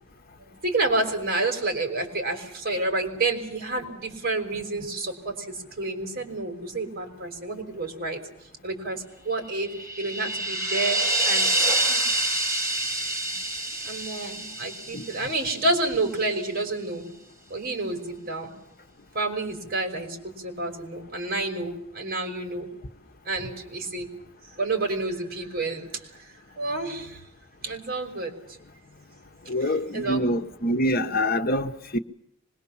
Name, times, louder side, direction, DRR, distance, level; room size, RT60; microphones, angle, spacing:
voice 1, 0.6-8.2 8.6-9.7 10.0-11.5 11.8-12.1 13.8-17.1 17.5-18.5 19.1-22.7 23.3-24.1 24.6-25.9 26.6-27.2 27.6-28.3 29.6-30.2, right 2 dB, 45° right, 5.6 m, -29 dB
sound 1, 9.6-15.8, right 2 dB, 15° right, 4.3 m, -27 dB
voice 2, 29.5-32.0, left 1 dB, 45° left, 1.2 m, -25 dB
25.5 x 22.0 x 7.3 m
head